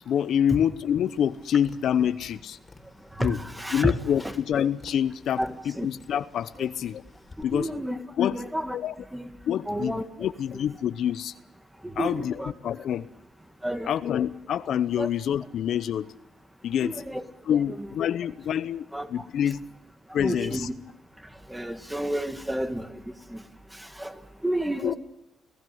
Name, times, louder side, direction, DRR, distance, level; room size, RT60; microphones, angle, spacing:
voice 1, 0.1-2.6 3.2-3.4 3.7-7.0 7.4-7.7 8.2-8.4 8.7-8.9 9.5-11.3 12.0-12.3 12.6-13.1 13.9-16.1 16.6-16.9 17.5-19.6 20.1-20.7 24.8-24.9, left 9 dB, 70° left, 13 dB, 0.8 m, -26 dB
Tap, 1.0-7.4, left 3 dB, 25° left, 3.8 m, -52 dB
voice 2, 3.2-3.9 4.2-4.3 5.4-5.9 6.6-6.7 7.5-8.0 8.3-8.8 9.1-9.3 9.7-10.1 11.8-12.5 13.6-14.0 15.0-15.1 16.8-17.3 17.5-17.9 18.9-19.1 20.1-20.7 21.5-23.0 23.3-23.4 23.7-24.9, equal, 5° right, 8 dB, 2.1 m, -31 dB
29.5 x 15.5 x 7.9 m, 0.81 s
cardioid pair, 90°, 0 cm